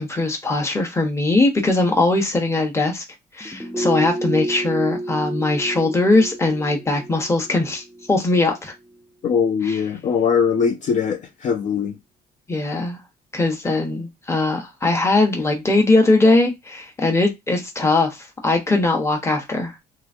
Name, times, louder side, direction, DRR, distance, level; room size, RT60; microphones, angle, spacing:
voice 1, 0.0-3.0 3.3-8.7 9.6-9.8 12.5-13.0 13.3-19.7, left 2 dB, 15° left, 1.0 m, -20 dB
sound 1, 3.4-8.6 8.9-9.0, right 1 dB, ahead, 0.5 m, -30 dB
voice 2, 9.2-11.9, left 6 dB, 45° left, 0.5 m, -21 dB
3.0 x 2.5 x 2.6 m
cardioid pair, 110°, 17 cm